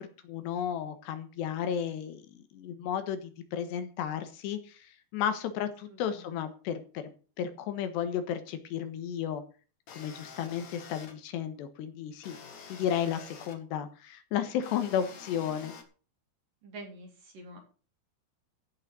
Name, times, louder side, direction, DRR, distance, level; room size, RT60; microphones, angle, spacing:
voice 1, 0.0-7.1 7.4-9.4 9.9-12.4 12.7-15.7, left 9 dB, 75° left, 9 dB, 3.5 m, -33 dB
voice 2, 5.9-6.4 15.0-15.1 16.6-17.6, right 1 dB, 50° right, 1 dB, 5.4 m, -47 dB
sound 1, 9.9-11.1 12.2-13.6 14.6-15.8, left 5 dB, 45° left, 2.8 m, -48 dB
15.0 x 6.5 x 7.6 m, 0.37 s
omnidirectional pair, 5.0 m